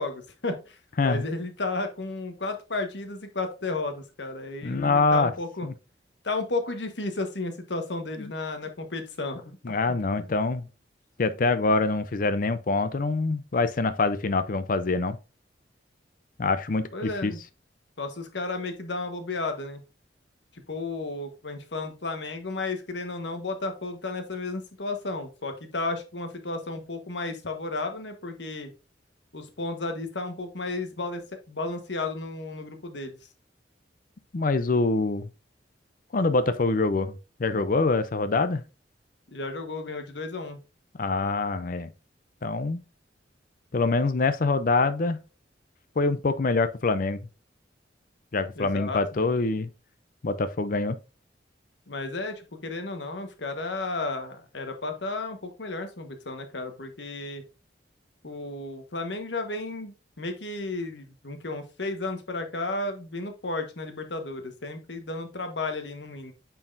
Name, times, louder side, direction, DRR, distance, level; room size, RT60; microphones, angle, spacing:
voice 1, 0.0-0.8 1.0-5.7 6.2-9.4 10.2-10.3 16.9-17.4 18.0-19.8 20.7-28.7 29.3-31.2 31.5-33.2 39.3-40.6 48.6-49.0 51.9-57.4 58.2-66.3, left 2 dB, 80° left, 1.3 m, -33 dB
voice 2, 4.6-5.3 5.6-5.7 8.2-8.3 9.6-10.7 11.2-15.2 16.4-17.3 34.3-35.3 36.1-37.1 37.4-38.6 41.0-41.9 42.4-42.8 43.7-45.2 46.0-47.2 48.3-49.7 50.2-51.0, left 3 dB, 50° left, 0.5 m, -25 dB
8.8 x 4.6 x 2.6 m
head